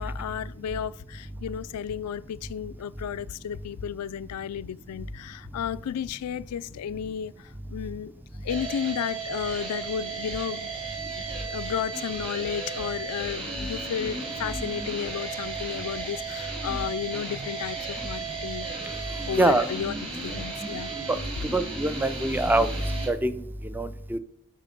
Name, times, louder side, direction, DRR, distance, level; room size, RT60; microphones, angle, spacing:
voice 1, 0.0-8.1 8.4-10.7 11.0-11.2 11.5-18.7 19.3-19.9 20.2-20.9, left 8 dB, 85° left, 0.3 m, -33 dB
sound 1, 8.5-23.1, right 4 dB, 25° right, 2.1 m, -35 dB
voice 2, 21.5-22.7 23.1-23.4 23.7-24.2, right 2 dB, 10° right, 0.4 m, -23 dB
9.9 x 4.2 x 5.2 m
head